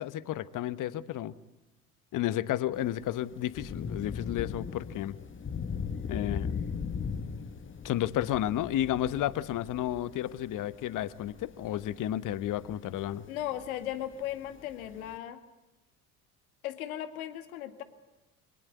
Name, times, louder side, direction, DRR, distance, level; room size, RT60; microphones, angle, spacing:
voice 1, 0.0-1.3 2.1-5.1 6.1-6.6 7.8-13.2, left 12 dB, 45° left, 17 dB, 1.1 m, -32 dB
Thunder / Rain, 2.7-15.2, left 6 dB, 25° left, 1.5 m, -39 dB
voice 2, 13.3-15.4 16.6-17.8, left 12 dB, 70° left, 9 dB, 2.0 m, -37 dB
24.5 x 19.5 x 9.5 m, 0.98 s
figure-of-eight pair, 60°, 44 cm